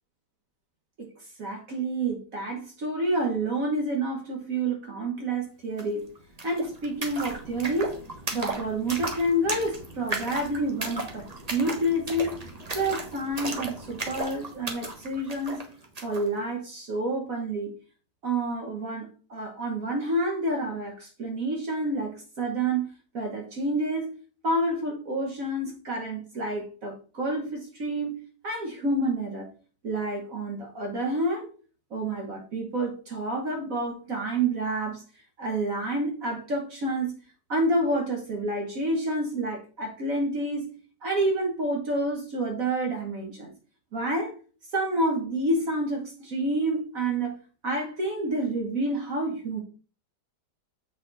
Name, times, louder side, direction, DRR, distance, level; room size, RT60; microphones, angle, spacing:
voice 1, 1.4-6.1 6.4-7.9 8.3-11.2 11.5-12.3 12.7-15.6 16.0-17.7 18.2-24.2 24.4-29.5 29.8-31.5 31.9-35.0 35.4-37.2 37.5-40.8 41.0-43.5 43.9-44.3 44.7-49.6, right 1 dB, 55° right, 2 dB, 1.5 m, -29 dB
sound 1, 5.8-5.9 6.1-16.3, right 2 dB, 25° right, 1.0 m, -36 dB
7.4 x 4.2 x 3.9 m, 0.40 s
omnidirectional pair, 1.9 m